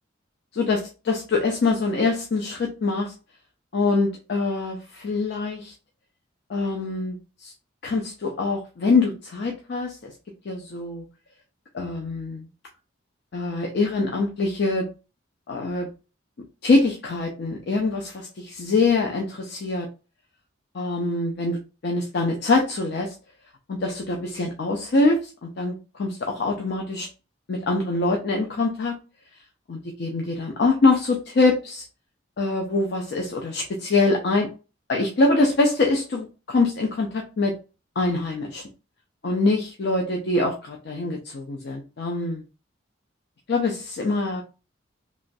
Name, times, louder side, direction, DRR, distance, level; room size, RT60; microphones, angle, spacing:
voice 1, 0.5-3.1 3.7-5.7 6.5-7.5 7.8-10.1 10.5-11.0 11.7-12.5 13.3-14.9 15.5-15.9 16.6-19.9 20.7-23.1 23.7-27.1 27.5-29.0 29.7-31.8 32.4-34.5 34.9-37.5 38.0-38.6 39.2-42.4 43.5-44.4, left 3 dB, 55° left, 1 dB, 0.4 m, -24 dB
3.0 x 2.4 x 2.5 m, 0.32 s
head